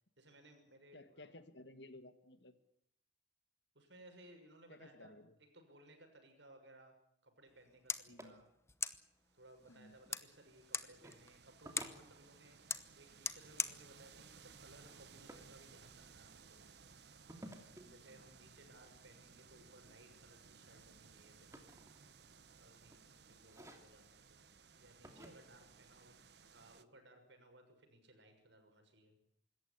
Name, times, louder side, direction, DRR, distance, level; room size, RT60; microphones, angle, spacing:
voice 1, 0.2-1.3 3.7-5.1 5.4-6.9 7.2-8.5 9.3-16.6 17.9-21.6 22.6-24.4 24.7-29.1, right 1 dB, 80° right, 5 dB, 6.3 m, -62 dB
voice 2, 0.9-2.6 4.7-5.4 8.1-8.4 9.7-10.0 17.9-18.2 19.8-19.9 26.4-26.5, left 2 dB, 70° left, 10 dB, 2.1 m, -57 dB
sound 1, 7.5-15.5, left 5 dB, 15° left, 1.0 m, -46 dB
sound 2, 8.1-8.3 9.6-10.2 11.0-11.2 11.6-12.7 14.8-15.5 17.3-17.9 19.8-20.1 20.5-22.4 22.8-23.1 23.4-24.1 25.0-25.3, right 1 dB, 15° right, 3.0 m, -55 dB
sound 3, 9.3-26.8, right 5 dB, 65° right, 1.2 m, -61 dB
26.0 x 14.0 x 9.9 m, 0.73 s
head